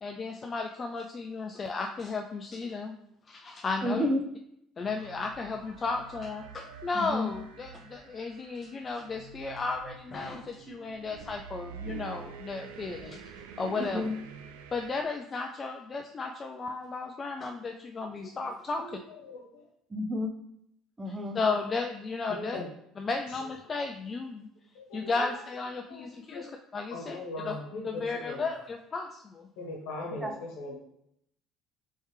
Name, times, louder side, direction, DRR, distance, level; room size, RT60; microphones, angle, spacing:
voice 1, 0.0-2.9 3.3-4.1 4.8-13.2 13.6-14.1 14.7-18.8 21.3-22.6 23.0-24.5 24.9-27.2 27.4-27.6 27.8-29.5, left 4 dB, 35° left, 3 dB, 0.3 m, -34 dB
voice 2, 3.8-4.2 6.9-7.3 13.8-14.1 19.9-20.4 21.0-21.4 30.2-30.3, left 1 dB, 20° right, 5 dB, 0.5 m, -30 dB
sound 1, 4.8-15.0, right 6 dB, 90° right, 0.3 m, -47 dB
voice 3, 18.0-18.3 18.7-19.7 22.3-22.7 24.7-25.4 25.9-26.5 26.9-28.5 29.6-30.7, left 2 dB, 80° left, -1 dB, 1.0 m, -40 dB
3.3 x 3.1 x 3.2 m, 0.76 s
hypercardioid pair, 70°, 0 cm